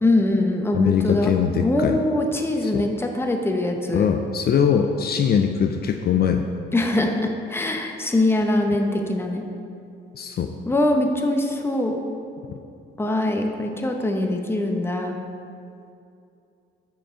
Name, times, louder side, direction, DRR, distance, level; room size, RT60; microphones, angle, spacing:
voice 1, 0.0-1.3 1.6-4.1 6.7-9.4 10.7-12.0 13.0-15.2, left 1 dB, 10° left, 3 dB, 0.8 m, -22 dB
voice 2, 0.7-2.0 2.6-2.9 3.9-6.5 10.1-10.5, left 7 dB, 50° left, 5 dB, 0.5 m, -21 dB
7.1 x 5.4 x 5.0 m, 2.6 s
cardioid pair, 90°, 20 cm